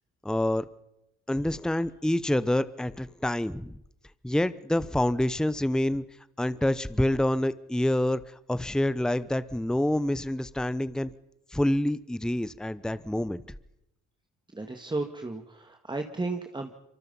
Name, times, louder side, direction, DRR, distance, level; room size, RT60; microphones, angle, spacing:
voice 1, 0.2-0.6 1.3-3.8 4.2-6.0 6.4-8.2 8.5-11.1 11.5-13.4, left 1 dB, ahead, 15 dB, 0.9 m, -27 dB
voice 2, 14.5-16.7, right 3 dB, 15° right, 5 dB, 1.9 m, -34 dB
26.5 x 24.0 x 5.6 m, 0.84 s
cardioid pair, 90°, 30 cm